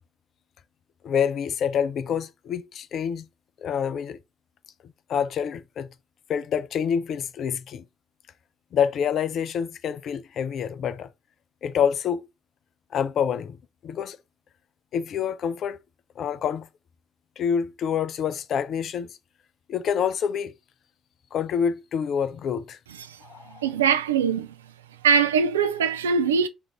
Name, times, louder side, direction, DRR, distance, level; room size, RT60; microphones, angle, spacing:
voice 1, 1.0-3.3 3.6-4.2 5.1-5.9 6.3-7.8 8.7-11.1 11.6-12.2 12.9-13.6 13.8-14.2 14.9-15.8 16.2-16.7 17.4-19.2 19.7-20.5 21.3-22.8 23.2-23.6, left 7 dB, 50° left, 0.4 m, -27 dB
voice 2, 23.5-24.6 25.0-26.5, right 6 dB, 80° right, 0.3 m, -22 dB
4.7 x 2.5 x 2.9 m
figure-of-eight pair, 45°, 0 cm